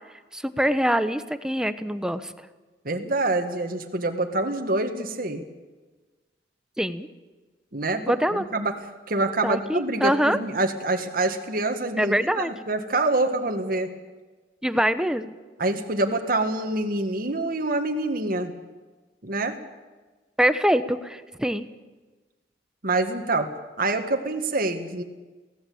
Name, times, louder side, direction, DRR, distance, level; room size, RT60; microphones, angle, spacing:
voice 1, 0.3-2.3 6.8-7.1 8.1-8.5 9.4-10.4 12.0-12.5 14.6-15.3 20.4-21.7, equal, 5° right, 12 dB, 1.0 m, -24 dB
voice 2, 2.9-5.4 7.7-8.0 8.3-8.7 9.1-13.9 15.6-18.5 19.2-19.6 22.8-23.5 23.8-25.0, right 2 dB, 55° right, 4 dB, 1.9 m, -26 dB
23.5 x 17.5 x 8.7 m, 1.3 s
head